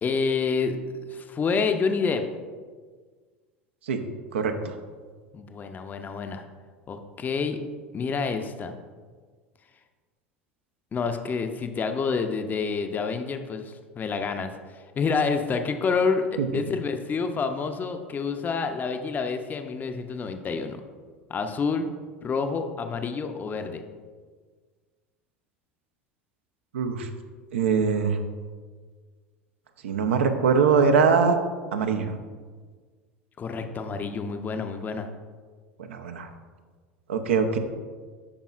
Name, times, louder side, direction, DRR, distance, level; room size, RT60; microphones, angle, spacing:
voice 1, 0.0-0.8 1.1-2.2 5.3-6.4 6.9-7.6 7.9-8.7 10.9-14.5 15.0-20.8 21.3-21.9 22.2-23.8 33.4-35.1, left 5 dB, 25° left, 7 dB, 0.5 m, -28 dB
voice 2, 4.3-4.7 16.4-16.5 26.7-27.1 27.5-28.2 29.8-31.4 31.7-32.1 35.9-36.3 37.1-37.6, right 5 dB, 75° right, 7 dB, 0.6 m, -22 dB
8.5 x 5.5 x 2.4 m, 1.5 s
hypercardioid pair, 80°, 7 cm